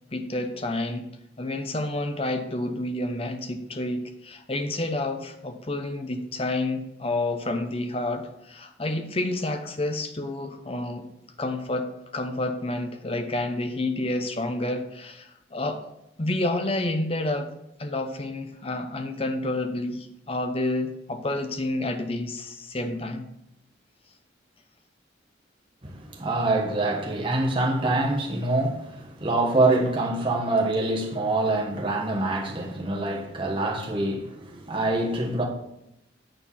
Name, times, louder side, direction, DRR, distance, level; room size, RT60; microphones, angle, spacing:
voice 1, 0.1-1.1 1.4-11.1 11.4-15.9 16.2-17.5 17.8-23.3, left 2 dB, 30° left, 0.7 m, -29 dB
voice 2, 25.8-35.4, right 2 dB, 25° right, 1.3 m, -25 dB
9.1 x 4.5 x 5.6 m
head